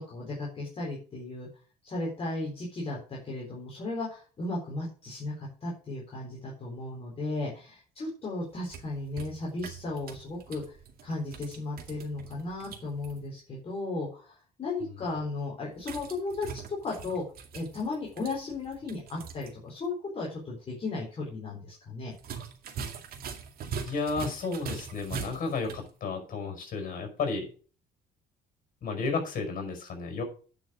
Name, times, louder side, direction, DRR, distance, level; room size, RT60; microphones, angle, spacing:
voice 1, 0.0-1.5 1.8-10.7 11.0-17.2 17.5-22.1, left 2 dB, 35° left, -4 dB, 4.1 m, -35 dB
sound 1, 8.5-13.2 15.8-19.5 19.8-19.9 22.1-25.9, right 6 dB, 65° right, 2.2 m, -42 dB
voice 2, 23.8-27.5 28.8-30.2, left 4 dB, 50° left, 4 dB, 5.7 m, -32 dB
10.0 x 6.2 x 6.3 m, 0.39 s
cardioid pair, 110°, 17 cm